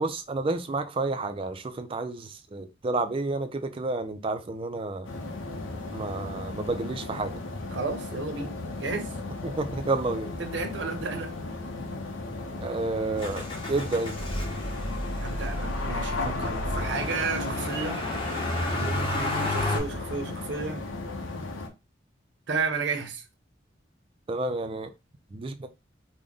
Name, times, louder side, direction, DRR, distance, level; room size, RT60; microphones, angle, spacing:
voice 1, 0.0-5.1 5.9-7.3 9.4-10.3 12.6-14.1 24.3-24.9 25.3-25.7, right 2 dB, 30° right, 0.4 m, -30 dB
sound 1, 5.0-21.7, left 2 dB, 85° left, 0.7 m, -35 dB
voice 2, 7.7-9.2 10.4-11.3 15.2-18.1 18.4-20.8 22.5-23.2, right 4 dB, 70° right, 0.7 m, -33 dB
Motor vehicle (road), 13.2-19.8, left 1 dB, 25° left, 0.9 m, -32 dB
3.5 x 2.1 x 3.8 m
head